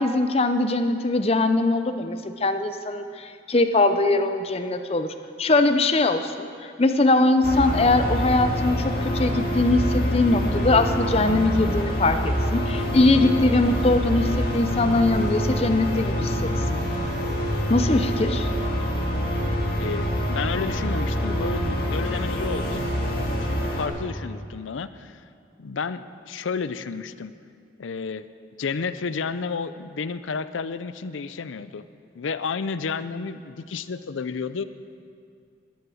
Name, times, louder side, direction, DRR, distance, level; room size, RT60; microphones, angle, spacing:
voice 1, 0.0-16.8 17.7-18.5, left 2 dB, 30° left, 8 dB, 0.6 m, -22 dB
sound 1, 7.4-23.9, equal, 50° left, 1.9 m, -26 dB
voice 2, 19.8-22.9 23.4-25.2 25.6-27.3 27.8-28.2 28.6-31.8 32.1-34.6, left 5 dB, 85° left, 13 dB, 0.5 m, -31 dB
12.5 x 11.0 x 6.3 m, 2.3 s
head